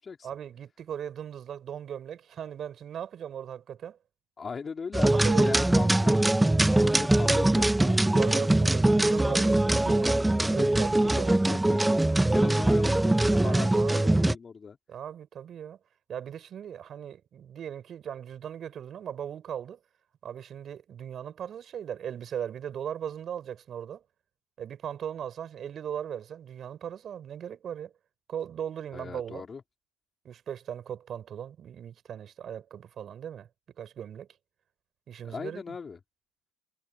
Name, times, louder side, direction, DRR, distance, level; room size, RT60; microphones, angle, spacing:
voice 1, 0.2-4.0 5.2-5.5 8.2-10.2 10.5-11.3 13.4-14.2 14.9-15.8 16.1-19.8 20.2-24.0 24.6-27.9 28.3-29.5 30.2-33.5 33.8-34.3 35.1-35.8, right 9 dB, 45° right, 6.6 m, -38 dB
voice 2, 4.4-8.6 11.5-14.8 28.9-29.6 35.2-36.0, left 5 dB, 30° left, 3.6 m, -38 dB
sound 1, 4.9-14.4, right 1 dB, 10° right, 1.1 m, -22 dB
supercardioid pair, 85°, 0 cm